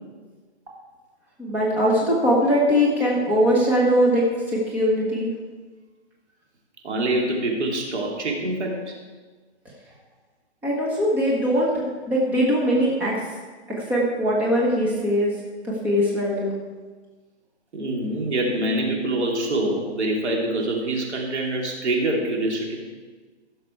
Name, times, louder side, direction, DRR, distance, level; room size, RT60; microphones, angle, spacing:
voice 1, 1.4-4.3 4.5-5.3 10.6-13.1 13.7-15.3 15.6-16.5, equal, 5° right, -5 dB, 1.0 m, -21 dB
voice 2, 6.8-8.9 17.7-22.8, right 1 dB, 80° right, -1 dB, 3.1 m, -25 dB
15.0 x 6.8 x 4.6 m, 1.4 s
hypercardioid pair, 170°, 34 cm